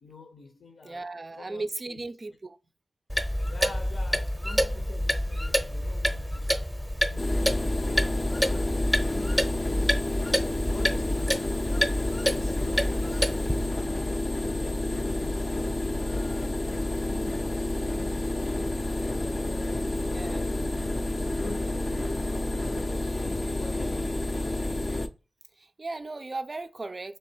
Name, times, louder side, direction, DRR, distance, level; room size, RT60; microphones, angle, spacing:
voice 1, 0.0-1.1 1.4-2.0 3.5-6.6 7.0-14.5 14.8-15.6 16.0-16.7 17.1-18.7 19.1-23.2 23.5-24.2, left 3 dB, 85° left, 0.7 m, -47 dB
voice 2, 0.8-2.6 20.0-20.5 25.6-27.2, right 3 dB, 35° right, 0.3 m, -37 dB
Clock, 3.1-13.7, equal, ahead, 0.6 m, -28 dB
sound 1, 7.2-25.1, left 1 dB, 35° left, 0.4 m, -29 dB
3.3 x 3.0 x 4.3 m
wide cardioid pair, 115°, 0 cm